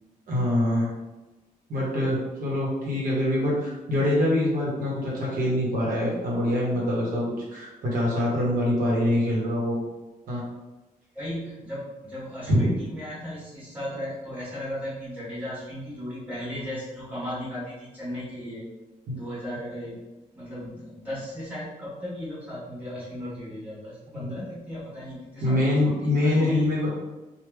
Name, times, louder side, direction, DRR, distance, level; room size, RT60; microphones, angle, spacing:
voice 1, 0.3-0.9 1.7-9.8 10.3-10.4 12.5-12.6 19.1-19.2 24.1-24.4 25.4-26.9, left 1 dB, 70° right, -4 dB, 0.9 m, -24 dB
voice 2, 11.1-18.6 19.1-19.9 20.3-26.8, equal, 10° right, -9 dB, 1.4 m, -36 dB
3.3 x 2.1 x 3.2 m, 1.1 s
wide cardioid pair, 160°, 15 cm